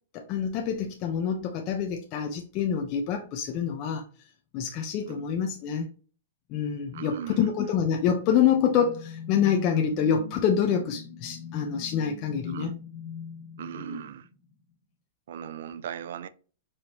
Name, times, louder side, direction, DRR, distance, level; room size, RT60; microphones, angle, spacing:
voice 1, 0.1-4.0 4.5-5.9 6.5-12.7 13.8-14.0, left 8 dB, 40° left, 0.6 m, -26 dB
voice 2, 6.9-7.5 12.5-12.8 13.6-14.3 15.3-16.3, right 9 dB, 70° right, 0.4 m, -38 dB
sound 1, 8.2-14.5, left 7 dB, 20° left, 1.4 m, -41 dB
4.8 x 2.7 x 2.9 m
hypercardioid pair, 135°, 0 cm